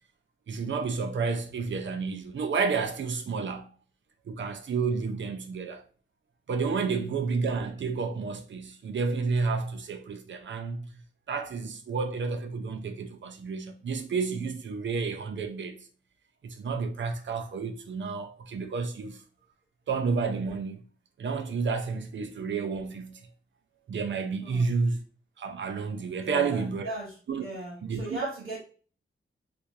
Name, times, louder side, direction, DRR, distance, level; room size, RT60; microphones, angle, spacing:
voice 1, 0.5-3.7 4.3-5.8 6.5-10.9 11.3-15.9 16.4-19.2 19.9-20.8 21.2-23.2 23.9-25.0 25.4-26.9 27.3-27.4 27.8-28.2, right 4 dB, 65° right, 0.6 m, -30 dB
voice 2, 26.2-28.6, right 1 dB, 90° right, 0.9 m, -38 dB
4.5 x 2.6 x 2.6 m
wide cardioid pair, 150°, 21 cm